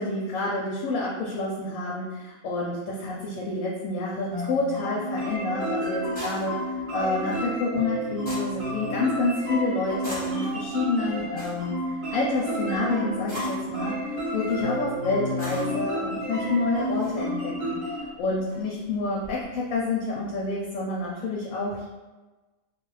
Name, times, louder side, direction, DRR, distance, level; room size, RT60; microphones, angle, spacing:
voice 1, 0.0-17.8 18.2-21.9, left 3 dB, 85° left, -4 dB, 1.0 m, -28 dB
sound 1, 4.3-18.0, equal, 50° right, 0.8 m, -31 dB
sound 2, 5.4-19.4, equal, 5° left, 1.0 m, -45 dB
2.3 x 2.3 x 3.1 m, 1.2 s
omnidirectional pair, 1.4 m